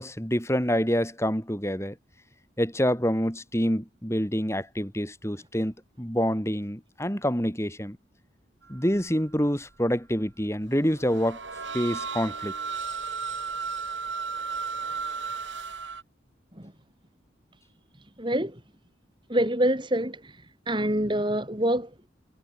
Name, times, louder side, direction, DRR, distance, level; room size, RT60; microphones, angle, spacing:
voice 1, 0.0-2.0 2.6-8.0 8.7-11.4 11.7-12.5, equal, 15° left, 8.0 m, -27 dB
sound 1, 8.6-9.1 9.4-9.9 10.3-16.0, right 5 dB, 80° right, 7.0 m, -34 dB
voice 2, 18.2-18.6 19.3-20.3 20.7-22.1, right 1 dB, 25° right, 4.6 m, -26 dB
head